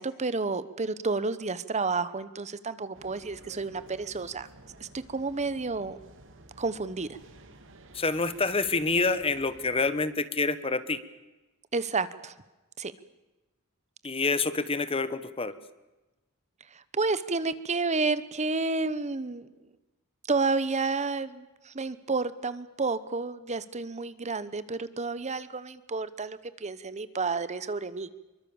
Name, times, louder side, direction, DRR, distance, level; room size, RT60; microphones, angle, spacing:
voice 1, 0.0-4.5 4.8-6.0 6.6-7.2 11.7-12.3 12.8-12.9 16.7-19.5 20.3-28.1, right 3 dB, 30° right, 15 dB, 1.0 m, -30 dB
sound 1, 2.9-9.9, right 2 dB, 60° right, 2.9 m, -52 dB
voice 2, 7.9-11.0 14.0-15.5, left 3 dB, 25° left, 14 dB, 1.3 m, -27 dB
26.5 x 23.5 x 7.2 m, 1.1 s
head